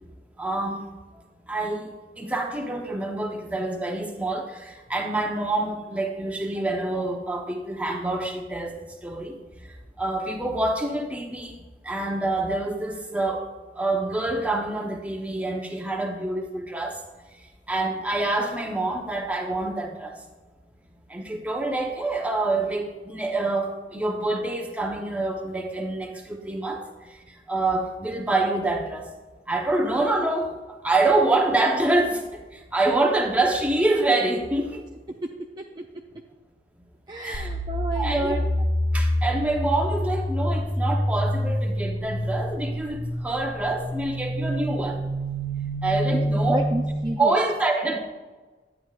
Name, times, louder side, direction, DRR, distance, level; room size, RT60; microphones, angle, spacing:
voice 1, 0.4-0.9 1.5-9.7 10.0-11.5 11.8-13.5 13.8-17.0 17.7-20.2 21.1-29.1 29.5-30.6 30.8-34.8 37.2-37.5 37.9-38.3 38.9-45.0 45.8-46.7 47.2-48.0, right 2 dB, 10° right, 1 dB, 0.9 m, -26 dB
voice 2, 35.1-35.9 37.1-38.5 46.1-47.4, right 2 dB, 25° right, 2 dB, 0.4 m, -31 dB
sound 1, 37.3-47.1, equal, 85° left, 2.5 m, -27 dB
11.5 x 8.8 x 2.4 m, 1.3 s
head